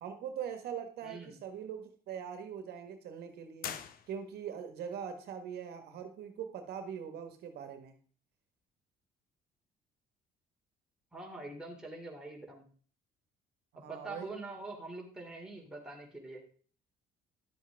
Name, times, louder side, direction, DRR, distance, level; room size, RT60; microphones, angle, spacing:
voice 1, 0.0-3.8 4.1-8.0 13.7-14.3, right 8 dB, 70° right, 7 dB, 1.5 m, -42 dB
voice 2, 1.0-1.4 11.1-12.7 13.8-16.4, right 2 dB, 5° right, -1 dB, 2.7 m, -44 dB
sound 1, 3.6-4.6, left 8 dB, 60° left, 0.9 m, -43 dB
11.5 x 7.5 x 3.5 m, 0.43 s
cardioid pair, 110°, 17 cm